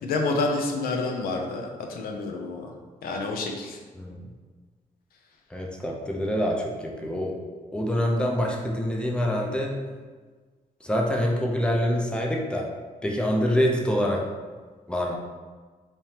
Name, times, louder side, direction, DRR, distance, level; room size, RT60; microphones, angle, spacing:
voice 1, 0.0-2.7 3.0-3.8, left 3 dB, 80° left, 2 dB, 0.5 m, -28 dB
voice 2, 5.5-7.4 7.7-9.8 10.8-12.7 13.0-14.3 14.9-15.2, equal, 5° left, 0 dB, 0.5 m, -25 dB
3.3 x 2.8 x 2.8 m, 1.4 s
cardioid pair, 90°, 15 cm